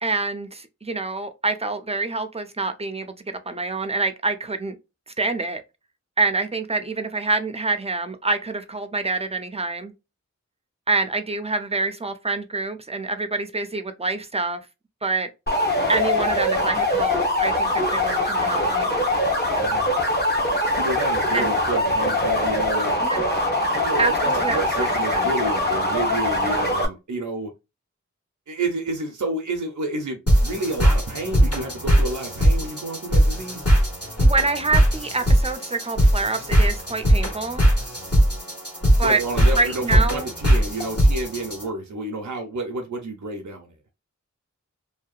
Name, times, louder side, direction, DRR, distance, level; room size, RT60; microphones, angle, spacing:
voice 1, 0.0-3.2 3.5-4.8 5.1-5.6 6.2-9.9 10.9-14.6 15.0-15.3 15.9-19.0 21.3-21.5 23.0-23.2 24.0-25.3 34.2-37.7 39.0-39.2 39.5-40.3, right 3 dB, 20° right, 0.5 m, -26 dB
sound 1, 15.5-26.9, left 1 dB, 35° left, 0.9 m, -22 dB
voice 2, 19.6-20.1 20.8-23.0 23.7-27.5 28.5-33.6 39.0-43.7, right 2 dB, 80° right, 0.6 m, -30 dB
sound 2, 30.3-41.6, equal, 55° left, 1.5 m, -20 dB
2.7 x 2.2 x 2.4 m
wide cardioid pair, 50°, 30 cm